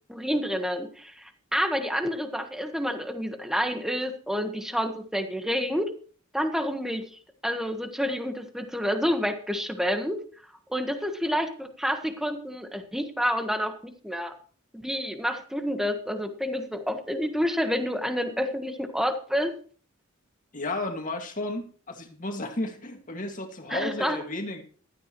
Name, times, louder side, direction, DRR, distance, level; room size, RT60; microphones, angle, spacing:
voice 1, 0.1-5.9 6.3-7.1 7.4-10.2 10.7-14.3 14.7-19.5 23.7-24.2, equal, ahead, 6 dB, 1.4 m, -29 dB
voice 2, 20.5-24.6, left 2 dB, 40° left, 4 dB, 2.1 m, -33 dB
16.0 x 12.5 x 3.1 m, 0.43 s
head